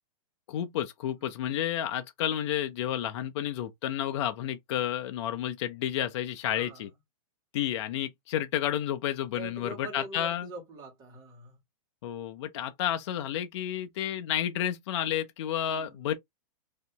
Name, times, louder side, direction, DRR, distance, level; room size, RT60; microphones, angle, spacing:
voice 1, 0.5-6.9 7.5-10.5 12.0-16.1, left 11 dB, 50° left, 0.5 m, -31 dB
voice 2, 6.5-6.9 9.4-11.6 15.7-16.0, right 2 dB, 20° right, 1.5 m, -44 dB
3.1 x 2.7 x 2.8 m
hypercardioid pair, 160°, 19 cm